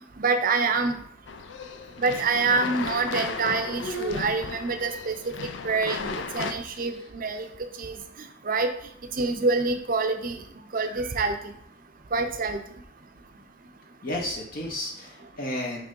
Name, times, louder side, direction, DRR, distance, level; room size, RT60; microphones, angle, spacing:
voice 1, 0.2-1.0 2.0-5.3 5.6-7.5 7.8-7.9 8.5-8.7 9.2-10.4 10.7-11.5 12.1-12.6, right 4 dB, 40° right, 6 dB, 0.6 m, -26 dB
sound 1, 1.3-6.5, left 5 dB, 60° left, 0.4 m, -35 dB
sound 2, 2.1-2.6 3.0-3.4 3.7-4.9 5.9-7.1, right 1 dB, 85° left, 1.6 m, -40 dB
voice 2, 14.0-15.9, left 1 dB, 45° left, -1 dB, 0.9 m, -33 dB
5.9 x 3.2 x 5.3 m, 0.69 s
head